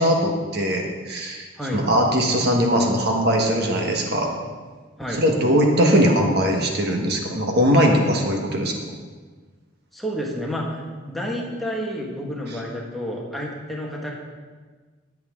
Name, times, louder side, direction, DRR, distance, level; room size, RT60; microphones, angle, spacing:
voice 1, 0.0-1.5 1.7-4.3 5.1-8.7, equal, 50° right, 1 dB, 1.5 m, -20 dB
voice 2, 9.9-14.1, equal, ahead, -3 dB, 1.7 m, -30 dB
19.5 x 7.8 x 3.8 m, 1.4 s
head